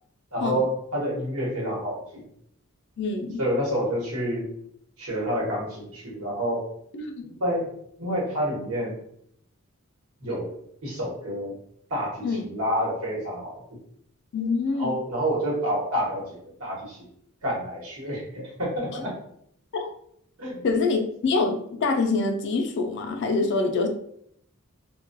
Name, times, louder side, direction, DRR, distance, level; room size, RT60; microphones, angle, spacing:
voice 1, 0.3-2.2 3.4-4.5 5.0-6.6 7.2-7.7 8.0-9.0 10.2-10.5 10.8-11.5 11.9-13.6 14.8-17.0 17.4-19.1 20.4-20.6, equal, 90° right, -4 dB, 1.0 m, -28 dB
voice 2, 3.0-3.4 6.9-7.3 12.2-12.5 14.3-14.9 19.7-19.9 20.6-23.9, left 3 dB, 55° left, 5 dB, 0.3 m, -25 dB
2.2 x 2.2 x 2.5 m, 0.70 s
head